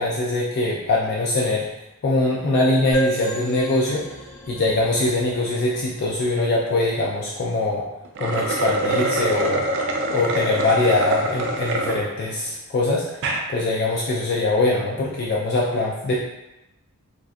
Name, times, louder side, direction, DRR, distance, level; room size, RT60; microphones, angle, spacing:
voice 1, 0.0-1.6 2.0-4.1 4.5-7.8 8.2-9.7 10.1-13.2 13.5-16.1, left 2 dB, 50° left, -4 dB, 0.3 m, -22 dB
sound 1, 2.9-6.5, right 2 dB, 30° left, 1.2 m, -31 dB
sound 2, 8.0-12.0 12.5-12.6 13.1-13.4, right 2 dB, 55° right, 0.4 m, -24 dB
3.6 x 2.3 x 2.5 m, 0.94 s
head